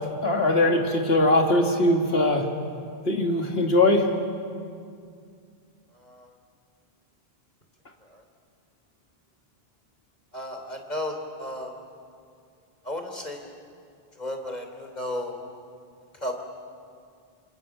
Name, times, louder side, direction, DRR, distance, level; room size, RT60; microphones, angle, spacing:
voice 1, 0.2-2.5 3.1-4.1, left 1 dB, 75° left, 2 dB, 2.8 m, -21 dB
voice 2, 5.9-6.3 8.1-8.2 10.3-11.7 12.8-13.5 14.2-15.4 16.2-16.3, left 1 dB, 45° left, 4 dB, 3.4 m, -34 dB
28.0 x 27.0 x 7.2 m, 2.3 s
omnidirectional pair, 1.0 m